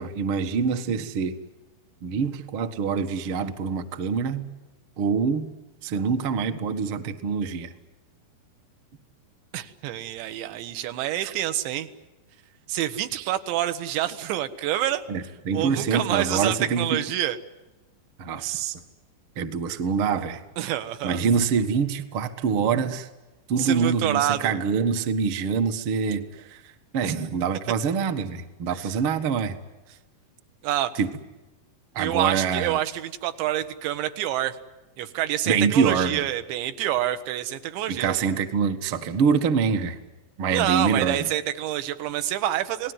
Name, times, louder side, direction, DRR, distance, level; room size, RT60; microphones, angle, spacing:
voice 1, 0.0-1.4 2.0-4.4 5.0-5.5 5.8-7.7 11.2-11.3 13.1-13.3 15.1-17.0 18.2-18.8 19.3-20.4 21.0-23.1 23.5-29.6 30.9-31.1 31.9-32.8 35.4-36.3 37.9-40.0 40.4-41.3, right 6 dB, 70° right, 7 dB, 1.2 m, -25 dB
voice 2, 9.5-11.9 12.7-15.1 15.5-17.4 20.6-21.2 23.6-24.5 27.0-27.1 28.7-28.9 30.6-30.9 32.0-34.6 35.0-38.2 40.5-42.9, right 12 dB, 85° right, 10 dB, 3.5 m, -27 dB
28.5 x 19.0 x 9.6 m, 1.1 s
omnidirectional pair, 5.0 m